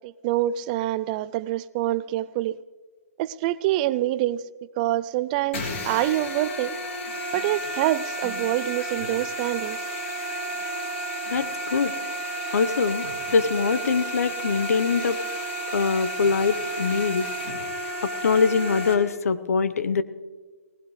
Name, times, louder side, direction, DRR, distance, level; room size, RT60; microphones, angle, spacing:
voice 1, 0.0-2.6 3.2-4.4 4.8-6.8 7.3-9.8, right 14 dB, 30° right, 0.4 m, -26 dB
sound 1, 5.5-18.9, right 1 dB, 50° left, 3.5 m, -32 dB
voice 2, 11.3-12.0 12.5-15.2 15.7-17.3 18.0-20.0, left 5 dB, 75° left, 0.9 m, -23 dB
20.0 x 19.0 x 3.2 m
hypercardioid pair, 140°, 8 cm